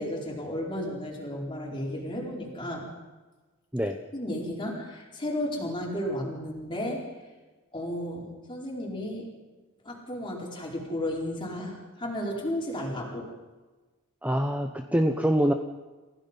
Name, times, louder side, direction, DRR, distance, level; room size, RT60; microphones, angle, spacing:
voice 1, 0.0-2.9 4.1-7.0 7.7-9.3 9.8-13.3, left 1 dB, 20° left, -2 dB, 5.0 m, -33 dB
voice 2, 14.2-15.5, equal, 5° right, 5 dB, 0.8 m, -25 dB
30.0 x 16.0 x 5.5 m, 1.3 s
head